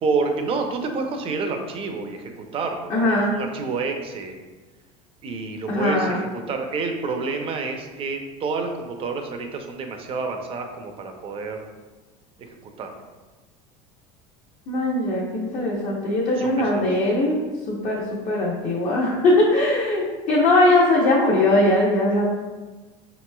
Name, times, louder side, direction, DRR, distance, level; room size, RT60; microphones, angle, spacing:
voice 1, 0.0-4.3 5.2-11.6 12.4-12.5 12.8-12.9 16.4-16.9, right 4 dB, 35° right, 4 dB, 0.5 m, -28 dB
voice 2, 2.9-3.4 5.7-6.2 14.7-17.4 17.7-22.2, left 2 dB, 45° left, -5 dB, 0.7 m, -20 dB
5.3 x 3.0 x 2.2 m, 1.3 s
supercardioid pair, 125°, 17 cm